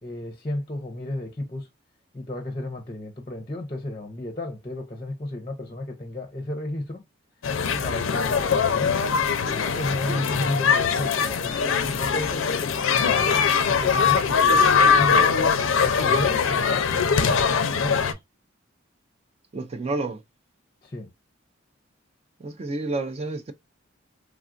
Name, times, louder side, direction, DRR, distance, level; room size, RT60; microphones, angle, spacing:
voice 1, 0.0-1.7 2.1-7.0 7.8-9.1 9.6-13.4 13.7-15.3 15.8-18.2 20.8-21.1, left 1 dB, 25° left, 0.6 m, -33 dB
sound 1, 7.4-18.1, left 6 dB, 85° left, 0.5 m, -22 dB
voice 2, 19.5-20.2 22.4-23.5, right 2 dB, 30° right, 0.4 m, -30 dB
3.4 x 2.3 x 2.4 m
head